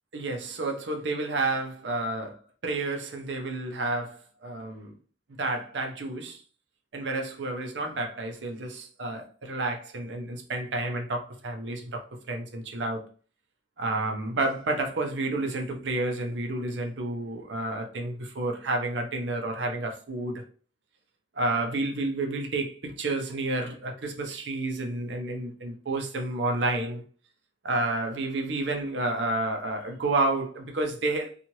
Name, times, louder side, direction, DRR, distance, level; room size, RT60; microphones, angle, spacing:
voice 1, 0.1-4.9 5.4-6.4 6.9-13.0 13.8-20.4 21.3-27.0 27.6-31.3, right 2 dB, 80° right, 0.7 m, -30 dB
3.0 x 2.4 x 2.7 m
head